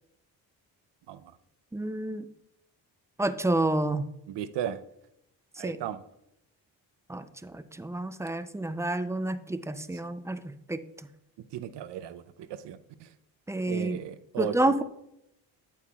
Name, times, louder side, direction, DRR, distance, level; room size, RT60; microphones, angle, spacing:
voice 1, 1.7-2.3 3.2-4.1 5.6-5.8 7.1-10.8 13.5-14.0 14.4-14.8, right 2 dB, 5° right, 12 dB, 0.4 m, -29 dB
voice 2, 4.3-4.8 5.6-6.0 11.5-13.1 13.7-14.6, right 10 dB, 65° right, 12 dB, 0.7 m, -36 dB
8.5 x 8.2 x 2.3 m, 0.81 s
supercardioid pair, 55°, 46 cm